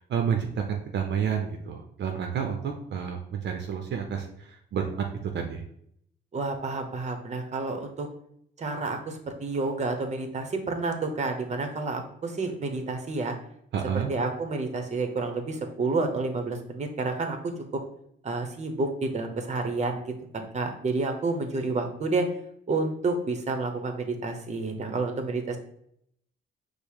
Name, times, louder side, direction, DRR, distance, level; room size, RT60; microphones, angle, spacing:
voice 1, 0.0-5.1 5.3-5.6 13.7-14.1, right 7 dB, 60° right, 3 dB, 0.6 m, -30 dB
voice 2, 6.3-8.1 8.6-13.3 14.1-17.5 18.2-22.3 22.7-25.6, right 3 dB, 35° right, 5 dB, 0.9 m, -30 dB
5.2 x 2.1 x 4.7 m, 0.70 s
cardioid pair, 90°, 20 cm